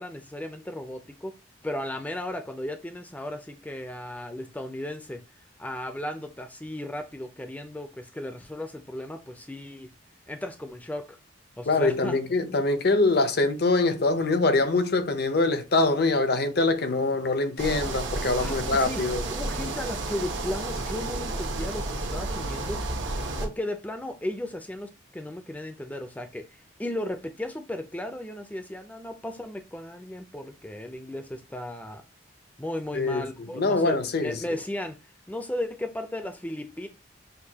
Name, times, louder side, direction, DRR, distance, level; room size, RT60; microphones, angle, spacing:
voice 1, 0.0-1.3 1.6-5.2 5.6-9.9 10.3-11.2 11.6-12.2 18.4-19.0 19.3-22.8 23.4-32.0 32.6-35.0 35.3-36.9, left 1 dB, 10° left, 0.4 m, -35 dB
voice 2, 11.7-19.2 32.9-33.2 33.5-34.3, left 3 dB, 50° left, 0.6 m, -24 dB
sound 1, 17.6-23.5, right 2 dB, 70° right, 0.9 m, -31 dB
6.5 x 2.3 x 2.8 m
head